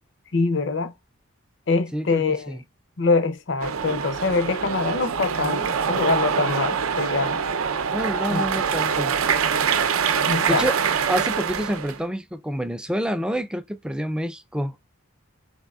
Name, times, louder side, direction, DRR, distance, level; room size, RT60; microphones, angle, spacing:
voice 1, 0.3-0.9 1.7-2.6 3.0-7.4 8.3-8.4 10.3-10.7, left 3 dB, 60° left, 0.6 m, -24 dB
voice 2, 1.9-2.6 7.9-9.1 10.5-14.8, equal, 5° right, 0.4 m, -28 dB
sound 1, 3.6-12.0, right 6 dB, 85° right, 0.6 m, -24 dB
4.7 x 3.5 x 2.3 m
head